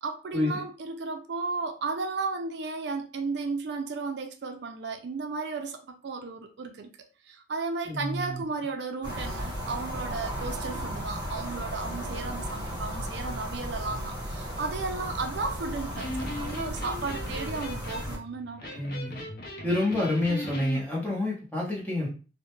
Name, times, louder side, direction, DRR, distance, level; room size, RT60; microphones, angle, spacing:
voice 1, 0.0-6.9 7.2-18.9, right 4 dB, 75° right, 0.4 m, -34 dB
voice 2, 7.9-8.4 18.7-19.3 19.6-22.1, left 1 dB, 10° left, 0.8 m, -28 dB
sound 1, 9.0-18.2, equal, 25° right, 1.1 m, -35 dB
Electric guitar, 15.8-20.8, left 1 dB, 55° left, 0.5 m, -38 dB
2.3 x 2.1 x 2.9 m
head